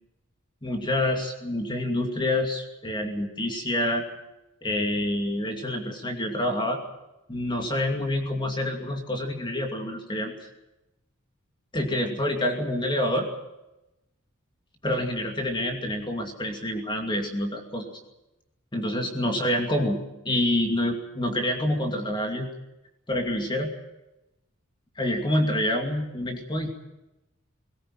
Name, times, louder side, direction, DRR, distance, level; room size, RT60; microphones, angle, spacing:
voice 1, 0.6-4.0 4.6-6.8 7.3-10.3 11.7-13.3 14.8-17.9 18.7-20.0 20.2-22.5 23.1-23.7 25.0-26.7, left 1 dB, 20° left, 3 dB, 2.5 m, -27 dB
20.5 x 18.0 x 9.0 m, 0.95 s
head